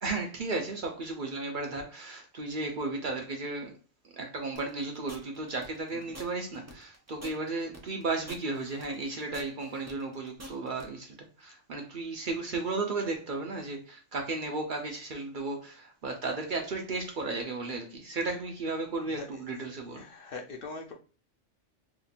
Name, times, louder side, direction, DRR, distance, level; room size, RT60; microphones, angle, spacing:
voice 1, 0.0-3.7 4.1-20.0, right 3 dB, 50° right, 0.7 m, -34 dB
sound 1, 4.5-10.9, right 1 dB, 25° right, 0.3 m, -47 dB
voice 2, 19.1-19.4 19.9-20.9, left 3 dB, 60° left, 0.7 m, -42 dB
2.9 x 2.5 x 4.0 m
omnidirectional pair, 1.2 m